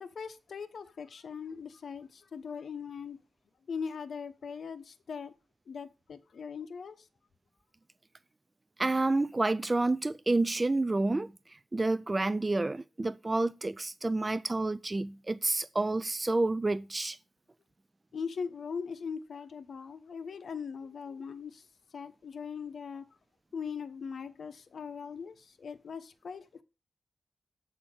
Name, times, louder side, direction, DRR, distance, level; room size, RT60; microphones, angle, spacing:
voice 1, 0.0-3.2 3.7-5.3 5.7-7.1 18.1-21.7 21.9-23.0 23.5-26.6, left 6 dB, 75° left, 0.9 m, -40 dB
voice 2, 8.8-11.3 11.7-17.2, right 2 dB, 25° right, 0.3 m, -29 dB
7.8 x 4.2 x 6.3 m
wide cardioid pair, 95°, 0 cm